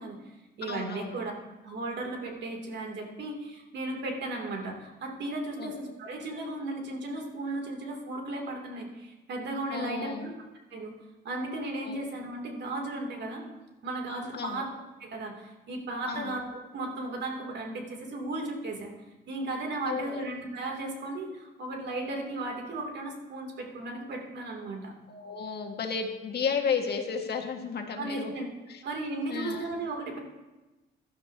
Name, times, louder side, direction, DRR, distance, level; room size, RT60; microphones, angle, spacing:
voice 1, 0.0-1.3 1.6-10.3 10.7-10.9 11.2-13.4 13.8-14.7 15.0-18.9 19.3-24.9 27.9-28.5 28.8-30.2, right 2 dB, 60° right, 2 dB, 2.8 m, -35 dB
voice 2, 0.6-1.2 5.6-5.7 9.7-10.3 11.8-12.0 14.3-14.6 16.1-16.3 19.9-20.2 25.1-28.3 28.7-28.8 29.3-29.7, left 6 dB, 55° left, 3 dB, 1.7 m, -33 dB
17.0 x 12.0 x 2.8 m, 1.1 s
cardioid pair, 90°, 20 cm